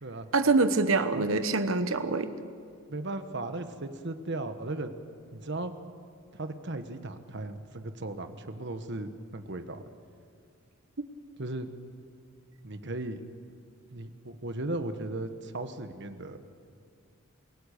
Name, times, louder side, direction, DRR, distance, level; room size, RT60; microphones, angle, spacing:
voice 1, 0.3-2.3, right 3 dB, 75° right, 10 dB, 1.1 m, -25 dB
voice 2, 2.9-4.9 5.3-5.8 6.3-9.8 11.4-11.7 12.6-13.2 13.9-16.4, right 2 dB, 55° right, 8 dB, 1.4 m, -36 dB
28.0 x 17.0 x 6.7 m, 2.3 s
head